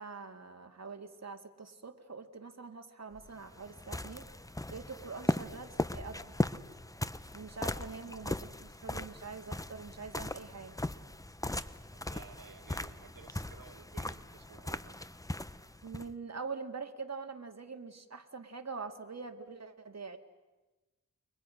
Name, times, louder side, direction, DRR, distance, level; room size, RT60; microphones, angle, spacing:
voice 1, 0.0-4.3 4.7-6.3 7.3-10.8 15.8-20.2, right 4 dB, 50° right, 5 dB, 2.0 m, -44 dB
sound 1, 3.1-16.1, left 1 dB, 10° left, 0.8 m, -38 dB
voice 2, 7.7-8.0 11.9-14.9, right 5 dB, 85° right, 7 dB, 1.8 m, -55 dB
29.5 x 23.5 x 6.3 m, 1.2 s
wide cardioid pair, 65°, 33 cm